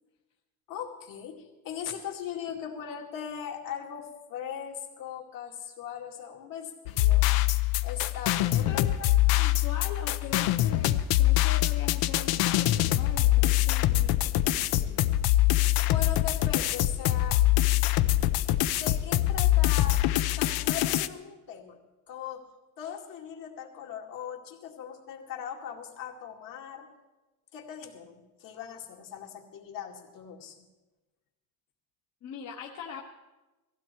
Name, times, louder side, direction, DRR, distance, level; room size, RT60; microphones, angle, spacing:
voice 1, 0.7-7.3 7.8-8.9 15.8-17.4 18.7-20.0 20.3-21.8 22.1-22.4 22.8-26.9 27.5-30.6, left 8 dB, 60° left, 1 dB, 2.5 m, -39 dB
sound 1, 6.9-21.1, left 15 dB, 75° left, 0.8 m, -24 dB
voice 2, 8.7-9.1 9.4-15.0 32.2-33.0, left 6 dB, 45° left, -1 dB, 1.3 m, -42 dB
18.0 x 15.5 x 4.5 m, 1.1 s
cardioid pair, 160°, 37 cm